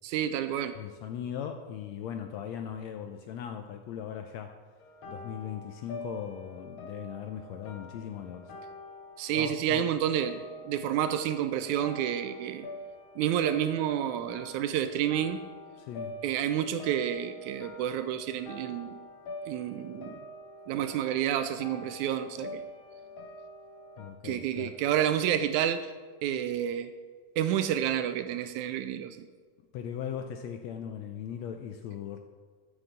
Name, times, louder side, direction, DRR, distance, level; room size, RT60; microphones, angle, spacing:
voice 1, 0.0-0.8 9.2-12.7 13.2-15.4 16.2-19.0 19.5-20.2 20.7-22.6 24.2-25.9 26.2-26.9 27.4-29.3, right 10 dB, 80° right, 10 dB, 1.8 m, -29 dB
voice 2, 0.8-4.6 5.1-8.5 9.4-9.9 15.8-16.2 24.0-24.8 29.7-32.2, left 9 dB, 80° left, 6 dB, 1.6 m, -39 dB
sound 1, 4.8-24.1, left 1 dB, 60° left, 1.5 m, -45 dB
9.2 x 6.9 x 7.3 m, 1.5 s
omnidirectional pair, 3.6 m